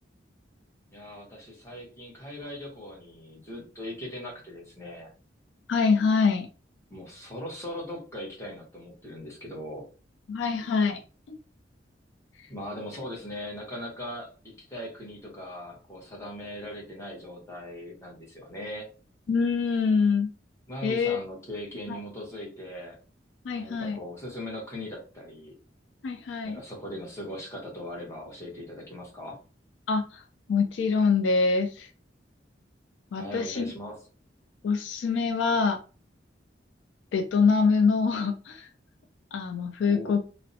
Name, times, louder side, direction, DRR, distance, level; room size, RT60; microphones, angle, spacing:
voice 1, 0.9-5.1 6.9-9.8 12.5-18.8 20.7-23.0 23.5-25.5 26.4-29.4 33.1-34.0 39.8-40.2, left 1 dB, 15° left, -3 dB, 0.9 m, -39 dB
voice 2, 5.7-6.5 10.3-11.0 11.3-11.4 19.3-20.3 20.8-21.2 21.9-22.0 23.4-24.0 26.0-26.6 29.9-30.2 30.5-31.9 33.1-33.7 34.6-35.8 37.1-38.7 39.3-40.2, left 5 dB, 85° left, 7 dB, 0.3 m, -25 dB
2.5 x 2.1 x 2.6 m, 0.35 s
head